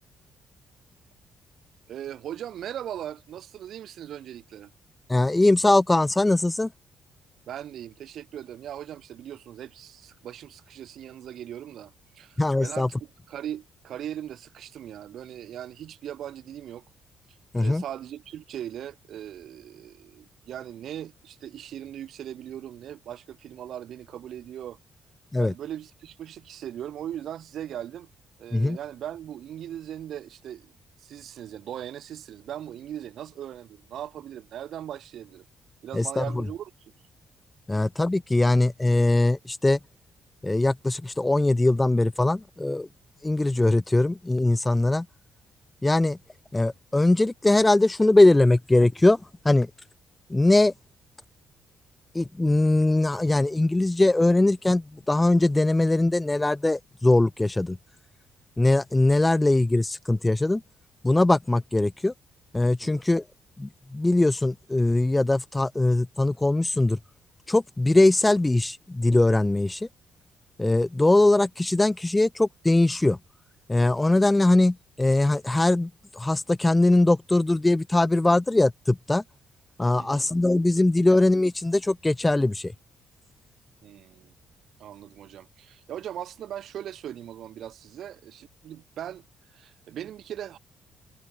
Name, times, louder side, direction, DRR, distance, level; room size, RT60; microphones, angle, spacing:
voice 1, 1.9-4.7 7.4-13.0 13.3-16.8 17.6-24.8 25.4-28.1 28.4-30.7 31.0-35.4 35.8-36.7 37.7-37.8 62.8-63.0 79.9-80.3 83.8-84.3 84.8-89.2 89.5-90.6, right 10 dB, 70° right, 4.6 m, -39 dB
voice 2, 5.1-6.7 12.4-12.9 17.5-17.8 25.3-25.5 28.5-28.8 35.9-36.4 37.7-39.8 40.4-42.9 43.2-45.1 45.8-46.2 46.5-49.2 49.4-49.7 50.3-50.7 52.1-57.8 58.6-60.6 61.0-62.1 62.5-63.2 63.6-67.0 67.5-69.9 70.6-73.2 73.7-79.2 79.8-82.7, left 2 dB, 15° left, 1.2 m, -21 dB
cardioid pair, 90°, 0 cm